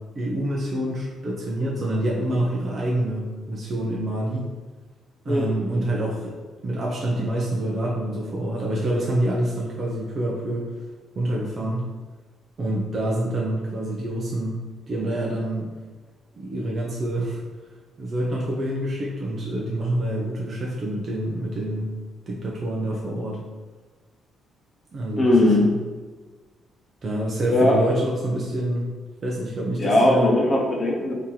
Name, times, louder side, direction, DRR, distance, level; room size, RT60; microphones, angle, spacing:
voice 1, 0.1-4.5 5.2-6.3 6.6-10.7 11.2-11.9 12.6-14.6 14.9-15.7 16.3-17.4 18.0-21.9 22.3-23.4 24.9-25.8 27.0-28.9 29.2-30.3, right 1 dB, 45° right, -3 dB, 0.7 m, -26 dB
voice 2, 25.2-25.7 27.5-27.8 29.8-31.1, left 1 dB, 35° left, 0 dB, 0.8 m, -19 dB
3.1 x 2.8 x 3.8 m, 1.3 s
cardioid pair, 90°, 0 cm